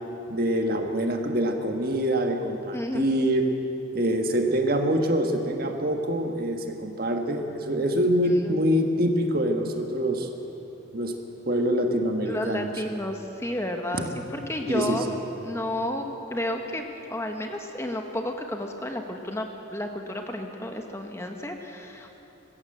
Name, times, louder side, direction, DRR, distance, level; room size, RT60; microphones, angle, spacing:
voice 1, 0.3-3.5 3.9-10.3 10.9-11.1 11.4-12.7 13.9-14.0 14.7-15.1, equal, 50° right, 4 dB, 1.6 m, -25 dB
voice 2, 2.7-3.1 8.5-8.6 12.3-14.0 14.3-15.1 15.4-22.1, left 1 dB, 15° left, 4 dB, 1.1 m, -32 dB
21.0 x 15.5 x 7.8 m, 3.0 s
head